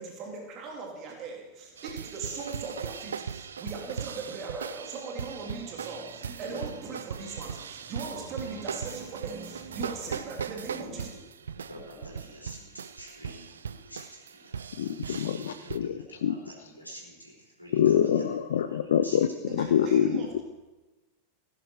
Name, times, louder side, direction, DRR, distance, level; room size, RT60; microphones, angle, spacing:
voice 1, 0.0-11.1 19.5-20.4, right 4 dB, 35° right, 0 dB, 2.7 m, -39 dB
sound 1, 1.8-15.8, right 7 dB, 70° right, 0.5 m, -39 dB
voice 2, 11.4-18.2 18.7-19.4, equal, 90° left, -2 dB, 4.1 m, -48 dB
voice 3, 14.8-16.4 17.7-20.4, left 9 dB, 60° left, 10 dB, 0.5 m, -25 dB
17.0 x 10.5 x 4.5 m, 1.1 s
figure-of-eight pair, 90°, 0 cm